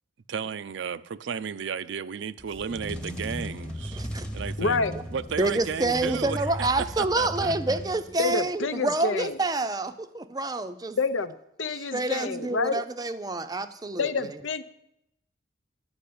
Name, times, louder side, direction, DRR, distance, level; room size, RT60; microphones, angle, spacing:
voice 1, 0.3-4.0 4.3-4.8 5.1-6.7 7.0-7.5, right 6 dB, 70° right, 0.4 m, -33 dB
sound 1, 2.4-8.4, equal, 5° left, 0.9 m, -36 dB
voice 2, 3.9-4.3 5.4-11.0 11.7-14.1, right 2 dB, 20° right, 0.5 m, -28 dB
voice 3, 4.6-4.9 8.2-9.4 11.0-11.3 11.6-12.8 14.0-14.6, left 4 dB, 80° left, 0.7 m, -27 dB
11.5 x 5.5 x 8.6 m
head